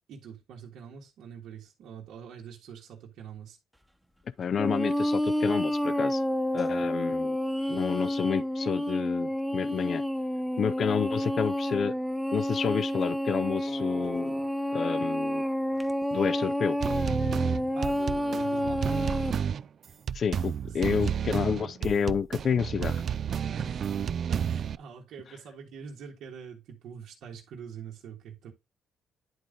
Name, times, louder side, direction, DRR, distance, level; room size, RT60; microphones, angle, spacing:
voice 1, 0.1-3.6 17.7-19.1 20.7-21.2 23.5-23.9 24.3-28.5, right 7 dB, 80° right, 1.7 m, -44 dB
voice 2, 4.4-6.2 6.5-7.4 7.7-10.0 10.6-11.9 12.3-14.4 14.7-15.4 16.1-16.8 20.1-23.0, left 7 dB, 55° left, 0.4 m, -29 dB
sound 1, 4.6-19.3, equal, ahead, 1.0 m, -29 dB
sound 2, 16.8-24.8, right 8 dB, 55° right, 0.4 m, -31 dB
10.5 x 3.7 x 3.8 m
cardioid pair, 90°, 0 cm